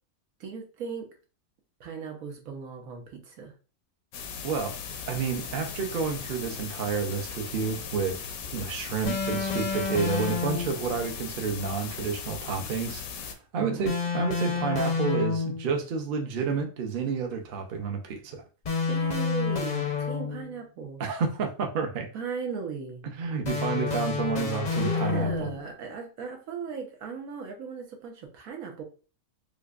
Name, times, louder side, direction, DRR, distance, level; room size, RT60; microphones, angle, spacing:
voice 1, 0.4-1.1 1.8-3.5 13.6-13.9 18.9-21.0 22.1-23.0 24.8-28.8, right 5 dB, 85° right, 1.3 m, -37 dB
sound 1, 4.1-13.3, left 6 dB, 85° left, 1.0 m, -38 dB
voice 2, 4.4-4.8 5.1-18.4 21.0-22.1 23.0-25.5, right 5 dB, 50° right, 0.7 m, -30 dB
sound 2, 9.1-10.9 13.9-15.7 18.6-20.6 23.5-25.7, left 5 dB, 50° left, 0.5 m, -29 dB
5.0 x 2.2 x 2.4 m
omnidirectional pair, 1.4 m